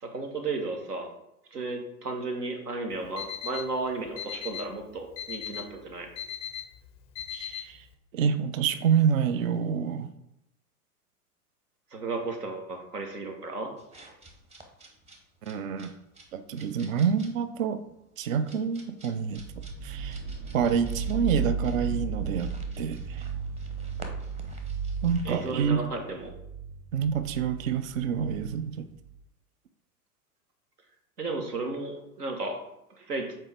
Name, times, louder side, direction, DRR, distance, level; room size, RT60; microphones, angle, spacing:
voice 1, 0.0-1.1 1.5-6.1 11.9-13.7 25.2-26.3 31.2-32.6 33.0-33.3, right 3 dB, 80° right, 1.5 m, -34 dB
Alarm, 2.9-7.9, left 9 dB, 15° left, 0.4 m, -39 dB
voice 2, 7.3-7.9 8.1-10.1 15.4-15.9 16.3-17.8 18.2-19.4 19.8-20.2 20.5-23.3 25.0-25.8 26.9-28.9, right 7 dB, 60° right, 0.7 m, -27 dB
sound 1, 13.8-25.7, right 1 dB, 15° right, 0.8 m, -51 dB
sound 2, 19.4-29.2, right 5 dB, 40° right, 2.1 m, -35 dB
7.4 x 4.4 x 3.5 m
figure-of-eight pair, 100°, 47 cm